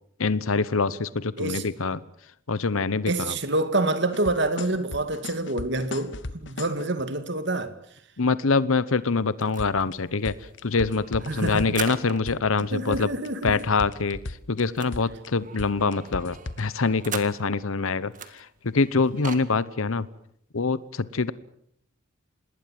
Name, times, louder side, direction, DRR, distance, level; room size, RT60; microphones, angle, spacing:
voice 1, 0.2-2.0 2.5-3.4 8.2-13.1 13.4-20.1 20.5-21.3, left 4 dB, 80° left, 0.9 m, -25 dB
voice 2, 3.1-7.7 11.3-11.7 12.7-13.6, right 2 dB, 55° right, 2.2 m, -27 dB
sound 1, 4.1-6.9 9.6-9.9 10.3-11.9 12.3-12.6 12.9-14.6 14.9-15.3 15.6-16.6, left 2 dB, 60° left, 1.3 m, -36 dB
sound 2, 9.4-12.4 12.8-12.9 13.1-13.3 13.5-17.7 18.1-19.5, right 7 dB, 40° right, 1.9 m, -41 dB
27.0 x 20.0 x 7.6 m
head